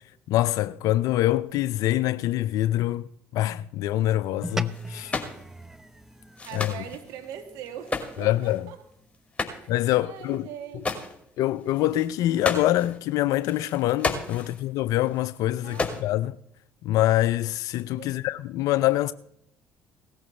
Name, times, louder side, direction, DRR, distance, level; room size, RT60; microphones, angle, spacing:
voice 1, 0.3-3.1 3.3-5.1 6.5-6.7 8.2-8.6 9.7-10.4 11.4-16.3 16.8-19.1, left 14 dB, 70° left, 0.4 m, -25 dB
sound 1, 4.4-9.0, right 1 dB, 5° right, 0.7 m, -40 dB
sound 2, 4.7-5.4 6.4-8.6 9.1-9.9 10.2-10.4 10.6-11.2 11.5-13.0 13.4-14.6 15.0-16.0, left 3 dB, 20° left, 2.6 m, -33 dB
voice 2, 6.5-8.8 9.4-9.7 10.0-11.1 14.3-14.6 15.6-15.9 17.9-18.2, right 9 dB, 75° right, 1.8 m, -42 dB
17.5 x 13.5 x 3.2 m
hypercardioid pair, 65°, 6 cm